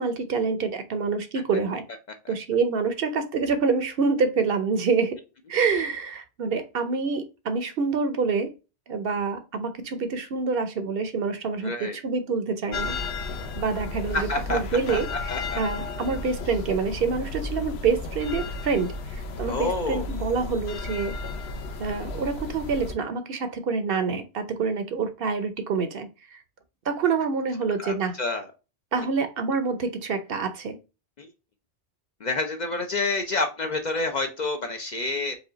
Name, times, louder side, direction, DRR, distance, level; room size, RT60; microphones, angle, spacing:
voice 1, 0.0-1.8 2.3-5.2 5.5-8.5 8.9-13.0 13.6-15.3 15.6-21.2 21.8-26.4 26.9-28.2 28.9-30.8, right 5 dB, 60° right, 0.8 m, -27 dB
voice 2, 11.6-12.0 14.1-14.6 14.9-15.0 15.3-15.6 19.4-20.0 27.8-28.5 31.2-31.3 32.2-35.3, left 3 dB, 50° left, 0.6 m, -28 dB
sound 1, 12.7-22.9, left 3 dB, 70° left, 0.9 m, -33 dB
5.0 x 2.3 x 3.8 m
omnidirectional pair, 1.1 m